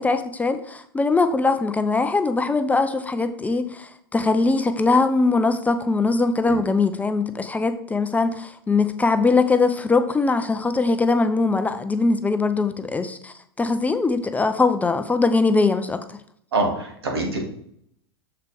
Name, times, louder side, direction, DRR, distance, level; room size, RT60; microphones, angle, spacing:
voice 1, 0.0-16.0, left 3 dB, 10° left, 9 dB, 0.5 m, -21 dB
voice 2, 16.5-17.4, right 2 dB, 75° right, 1 dB, 2.3 m, -24 dB
6.9 x 6.7 x 3.4 m, 0.68 s
figure-of-eight pair, 90°, 13 cm